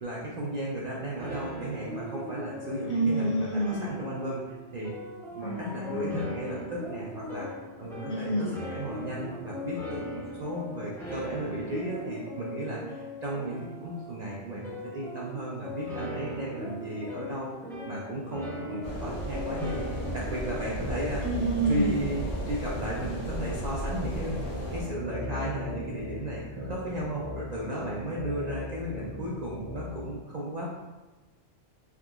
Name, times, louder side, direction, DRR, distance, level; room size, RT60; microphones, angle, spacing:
voice 1, 0.0-4.9 5.3-7.5 7.8-10.0 10.3-17.5 17.9-21.2 21.7-30.7, right 1 dB, 55° right, -5 dB, 0.4 m, -35 dB
sound 1, 1.2-20.7, left 1 dB, 5° left, 0.4 m, -39 dB
voice 2, 2.9-3.9 5.4-6.3 8.1-8.6 21.2-22.0, right 1 dB, 70° left, -2 dB, 0.9 m, -28 dB
sound 2, 18.8-24.8, right 1 dB, 90° left, 1.5 m, -35 dB
sound 3, 19.3-30.1, left 2 dB, 85° right, 1.4 m, -39 dB
3.6 x 2.7 x 2.3 m, 1.2 s
omnidirectional pair, 1.2 m